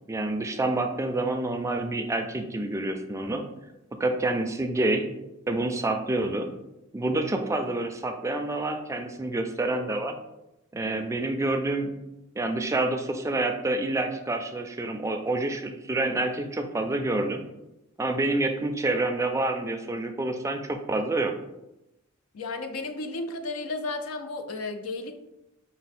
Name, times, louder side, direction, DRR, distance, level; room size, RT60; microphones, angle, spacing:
voice 1, 0.1-3.4 4.0-5.0 5.5-6.5 6.9-10.2 10.7-11.9 12.4-17.4 18.0-21.3, right 2 dB, 15° right, 5 dB, 0.3 m, -28 dB
voice 2, 22.3-25.2, left 3 dB, 90° left, 7 dB, 0.5 m, -33 dB
5.1 x 2.0 x 4.1 m, 0.90 s
head